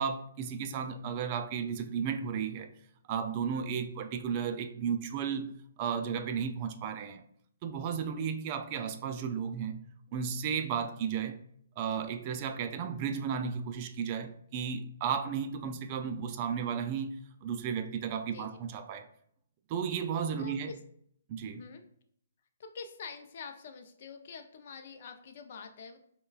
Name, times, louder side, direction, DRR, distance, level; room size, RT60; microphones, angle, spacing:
voice 1, 0.0-2.7 3.1-5.5 5.8-7.2 7.6-9.8 10.1-11.4 11.8-17.2 17.4-19.1 19.7-20.7 21.3-21.6, right 7 dB, 35° right, 0.3 m, -34 dB
voice 2, 20.4-20.8 21.5-21.8 22.6-26.0, left 5 dB, 50° left, 0.5 m, -45 dB
5.4 x 2.2 x 2.3 m
hypercardioid pair, 150°, 0 cm